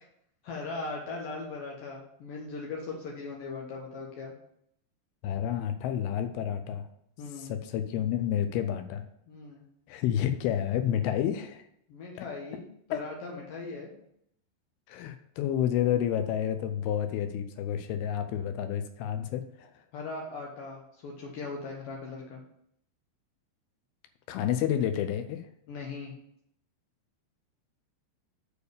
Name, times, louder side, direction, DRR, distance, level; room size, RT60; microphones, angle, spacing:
voice 1, 0.4-4.3 7.2-7.5 9.3-9.6 11.9-13.9 19.9-22.4 25.7-26.1, left 3 dB, 65° left, -2 dB, 2.3 m, -39 dB
voice 2, 5.2-6.9 7.4-9.0 9.9-11.6 12.9-13.0 14.9-19.7 24.3-25.4, left 10 dB, 85° left, 8 dB, 2.2 m, -30 dB
6.8 x 4.7 x 6.5 m, 0.72 s
omnidirectional pair, 5.1 m